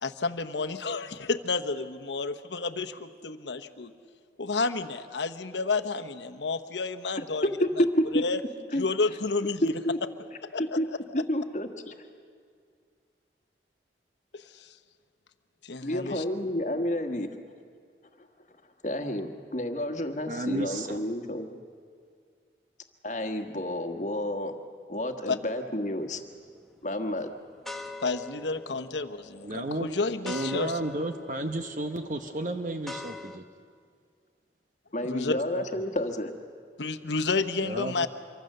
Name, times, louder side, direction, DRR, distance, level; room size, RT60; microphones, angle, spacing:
voice 1, 0.0-3.9 4.4-7.5 7.8-7.9 8.1-8.4 8.7-9.7 10.4-10.8 14.3-14.8 15.6-16.2 25.3-25.4 28.0-30.8 35.0-35.3 36.8-38.1, left 3 dB, 85° left, 8 dB, 1.0 m, -30 dB
voice 2, 9.6-10.0 10.6-10.9 11.1-12.1 15.8-17.3 18.8-21.6 23.0-24.5 24.9-26.2 26.8-27.3 34.9-36.3, left 1 dB, 40° left, 6 dB, 1.4 m, -30 dB
voice 3, 20.3-21.0 29.4-29.9 30.2-33.4 35.5-35.8 37.6-38.1, right 1 dB, 45° right, 6 dB, 0.9 m, -32 dB
sound 1, 26.0-26.5 27.0-33.4, left 2 dB, ahead, 0.9 m, -44 dB
26.0 x 24.0 x 6.7 m, 2.1 s
head